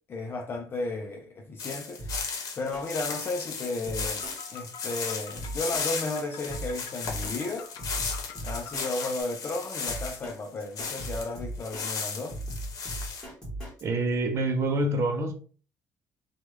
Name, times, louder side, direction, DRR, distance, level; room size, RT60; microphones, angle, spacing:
voice 1, 0.1-4.2 4.5-7.7 8.4-12.4, left 2 dB, 35° left, 0.5 m, -34 dB
sound 1, 1.6-11.3 11.6-13.2, left 5 dB, 60° left, 0.9 m, -35 dB
Drum kit, 2.0-2.4 2.7-2.8 3.1-3.2 3.5-3.6 3.8-4.3 4.6-4.7 5.0-5.1 5.3-5.8 6.1-6.2 6.5-7.3 7.6-8.8 9.1-9.2 9.5-9.6 9.8-10.3 10.6-11.8 12.1-13.8, right 1 dB, 10° left, 1.6 m, -37 dB
sound 2, 4.2-9.2, left 8 dB, 80° left, 0.5 m, -47 dB
voice 2, 13.8-15.3, right 2 dB, 45° right, 0.7 m, -26 dB
3.1 x 2.3 x 3.0 m
cardioid pair, 135°, 7 cm